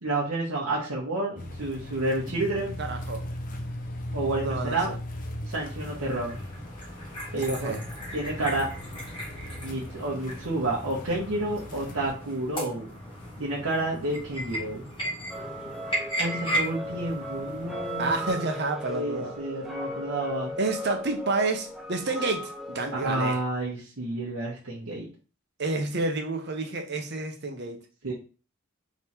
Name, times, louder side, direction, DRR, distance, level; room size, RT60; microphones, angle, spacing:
voice 1, 0.0-2.8 4.1-4.9 5.5-6.4 7.3-7.7 8.1-8.7 9.6-12.9 13.4-14.8 16.2-18.2 18.9-20.5 22.9-25.1 28.0-28.1, right 2 dB, 90° right, -5 dB, 1.3 m, -30 dB
sound 1, 1.4-12.1, left 1 dB, 40° left, 0.7 m, -38 dB
voice 2, 2.8-3.2 4.4-4.9 7.3-7.8 18.0-19.4 20.6-23.4 25.6-27.8, right 3 dB, 50° right, 4 dB, 0.9 m, -29 dB
sound 2, 5.8-18.3, equal, 25° left, 1.7 m, -36 dB
sound 3, 15.3-23.3, left 1 dB, ahead, 0.6 m, -37 dB
3.5 x 3.1 x 4.3 m, 0.35 s
head